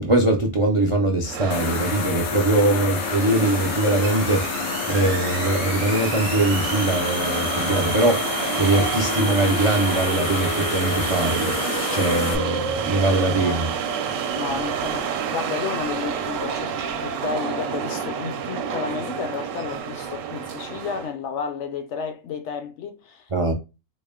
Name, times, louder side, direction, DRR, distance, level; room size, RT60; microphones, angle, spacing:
voice 1, 0.0-13.7 23.3-23.5, right 2 dB, 55° right, 0.3 m, -22 dB
sound 1, 1.2-21.1, right 7 dB, 75° right, 0.9 m, -29 dB
sound 2, 1.5-12.4, left 8 dB, 90° left, 1.0 m, -29 dB
voice 2, 14.4-23.5, left 6 dB, 65° left, 0.8 m, -32 dB
4.1 x 2.1 x 3.5 m
omnidirectional pair, 1.4 m